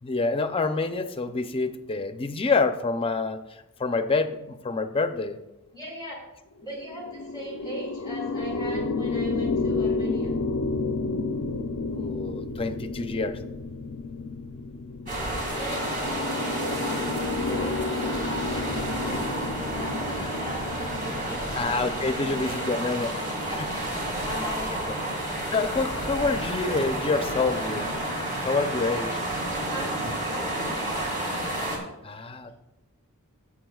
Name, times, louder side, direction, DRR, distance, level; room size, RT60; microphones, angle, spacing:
voice 1, 0.0-3.4 3.8-5.4 11.9-13.4 21.5-23.1 23.5-23.7 24.9-25.0 25.5-27.9 28.4-29.2 32.0-32.5, left 3 dB, 25° left, 9 dB, 0.5 m, -27 dB
voice 2, 5.7-6.2 6.6-10.4 15.5-16.8 17.4-21.4 22.0-22.6 23.0-23.8 24.2-24.9 29.7-31.1, equal, 20° right, -4 dB, 1.7 m, -39 dB
sound 1, 6.6-24.1, left 3 dB, 70° left, 0.5 m, -31 dB
sound 2, 15.1-31.8, right 1 dB, 35° right, 2.2 m, -31 dB
15.0 x 7.3 x 2.3 m, 0.96 s
head